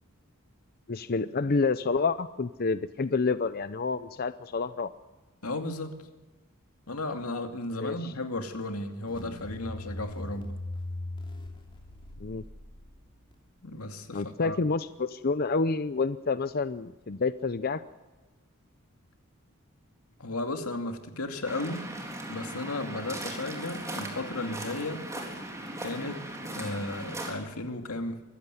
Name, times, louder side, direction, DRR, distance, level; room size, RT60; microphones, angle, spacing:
voice 1, 0.9-4.9 7.8-8.1 12.2-12.4 14.1-17.8, left 4 dB, 45° left, 13 dB, 0.6 m, -28 dB
voice 2, 5.4-6.0 6.9-10.6 13.6-14.6 20.2-21.8 22.3-25.1 25.8-26.2 26.5-28.2, left 2 dB, 90° left, 6 dB, 2.5 m, -34 dB
sound 1, 9.1-13.3, left 1 dB, 25° left, 2.8 m, -40 dB
Waves surf, 21.4-27.3, right 1 dB, 15° right, 3.8 m, -38 dB
23.5 x 15.5 x 9.5 m, 1.2 s
head